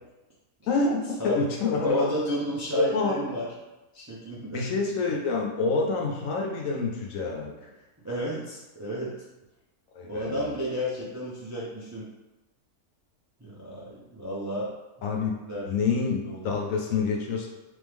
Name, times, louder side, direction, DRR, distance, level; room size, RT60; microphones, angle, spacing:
voice 1, 0.7-2.1 2.7-3.2 4.5-7.7 9.9-10.5 15.0-15.4 15.7-17.5, left 4 dB, 65° left, 0 dB, 1.0 m, -27 dB
voice 2, 1.8-3.5 3.9-4.6 8.0-9.1 10.0-12.1 13.4-14.7 15.0-15.7 16.3-16.5, equal, 20° right, -6 dB, 0.4 m, -32 dB
3.5 x 3.2 x 3.4 m, 1.0 s
omnidirectional pair, 1.6 m